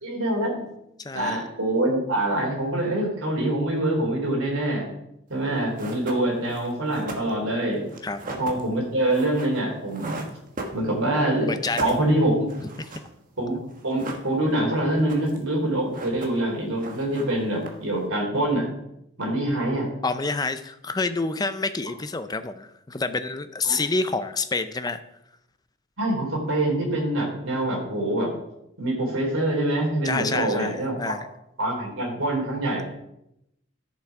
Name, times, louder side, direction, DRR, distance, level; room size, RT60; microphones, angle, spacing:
voice 1, 0.0-0.6 1.1-4.9 5.3-7.8 8.4-10.2 10.7-12.5 13.4-13.6 13.8-18.7 19.2-19.9 23.6-23.8 26.0-28.3 28.8-31.1 31.6-32.9, right 1 dB, 80° right, -1 dB, 3.4 m, -25 dB
voice 2, 1.0-1.4 8.0-8.2 11.5-11.9 12.6-13.0 20.0-25.0 30.0-31.3, left 3 dB, 20° left, 10 dB, 0.5 m, -28 dB
sound 1, 5.4-5.5 5.8-11.2 11.5-13.1 13.4-13.5 13.7-14.6 14.9-15.5 15.8-16.5 16.8-18.0, right 2 dB, 40° right, 1.4 m, -38 dB
11.5 x 6.9 x 4.8 m, 0.81 s
head